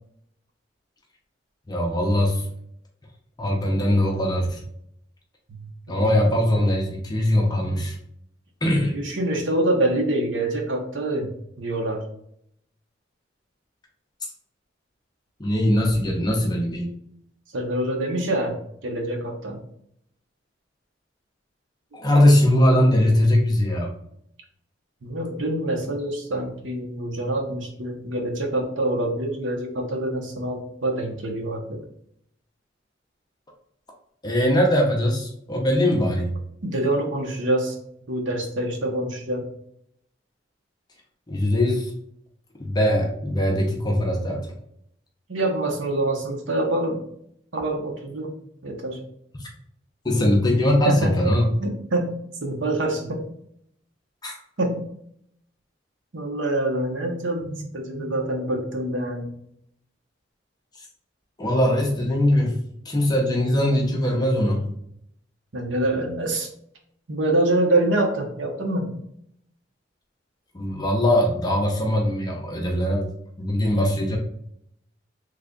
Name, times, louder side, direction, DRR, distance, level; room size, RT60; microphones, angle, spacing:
voice 1, 1.7-2.5 3.4-4.6 5.9-8.0 8.6-9.0 15.4-16.9 21.9-23.9 34.2-36.3 41.3-41.9 42.6-44.5 50.0-51.5 54.2-54.3 61.4-62.5 62.9-64.7 70.5-73.1 73.4-74.2, left 1 dB, 20° left, 0 dB, 0.6 m, -21 dB
voice 2, 5.5-6.2 8.9-11.3 11.6-12.0 17.5-18.6 18.8-19.6 25.0-31.8 36.6-37.8 38.1-39.5 45.3-47.0 47.5-48.3 48.6-49.0 50.8-51.1 51.6-52.1 52.4-53.2 54.6-54.8 56.1-59.3 65.5-66.5 67.1-68.9, right 1 dB, 85° right, 1 dB, 0.8 m, -25 dB
3.2 x 2.3 x 3.7 m, 0.70 s
head